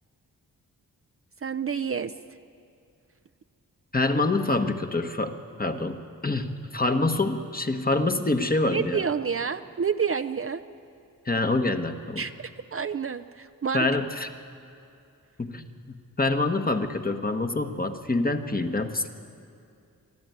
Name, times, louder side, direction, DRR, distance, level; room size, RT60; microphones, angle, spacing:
voice 1, 1.4-2.1 8.7-10.6 12.2-13.9, right 6 dB, 40° right, 8 dB, 0.6 m, -29 dB
voice 2, 3.9-5.3 5.6-9.0 11.2-12.2 13.7-14.3 15.4-19.1, left 2 dB, 25° left, 6 dB, 1.3 m, -26 dB
23.0 x 13.5 x 9.4 m, 2.5 s
cardioid pair, 70°, 35 cm